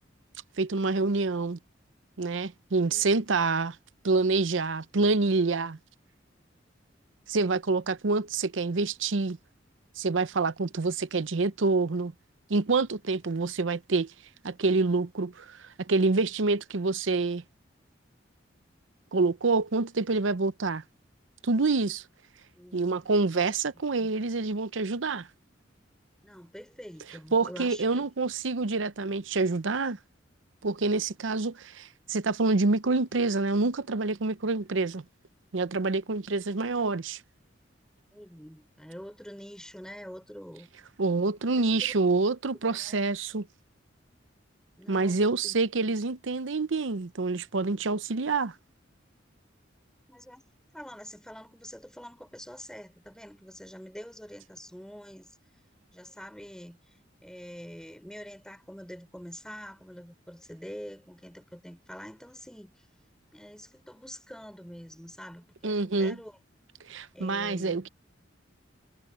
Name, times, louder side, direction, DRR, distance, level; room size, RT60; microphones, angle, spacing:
voice 1, 0.6-1.6 2.2-3.8 4.0-5.8 7.3-9.4 10.0-12.1 12.5-14.1 14.4-17.4 19.1-20.8 21.4-22.0 22.7-25.3 27.3-30.0 30.6-35.0 35.5-37.2 41.0-43.4 44.9-48.5 65.6-66.2 66.9-67.9, right 3 dB, 80° right, 0.7 m, -27 dB
voice 2, 2.9-3.5 22.5-22.9 24.0-24.1 26.2-28.1 38.1-40.7 41.6-41.9 42.6-43.1 44.8-45.6 50.1-50.5 50.7-55.4 55.9-62.8 63.3-66.4 67.1-67.8, equal, 5° left, 4.3 m, -46 dB
head